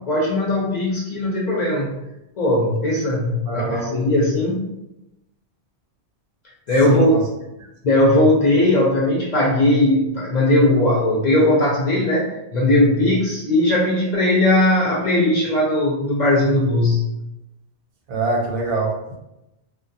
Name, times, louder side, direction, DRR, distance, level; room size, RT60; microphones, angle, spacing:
voice 1, 0.0-2.0 2.4-4.7 6.7-7.1 7.8-17.0, left 1 dB, 55° left, -4 dB, 0.5 m, -18 dB
voice 2, 3.5-3.9 6.9-7.0 7.6-7.7 18.1-19.2, right 2 dB, 90° right, -1 dB, 1.0 m, -24 dB
2.2 x 2.2 x 2.6 m, 0.91 s
omnidirectional pair, 1.2 m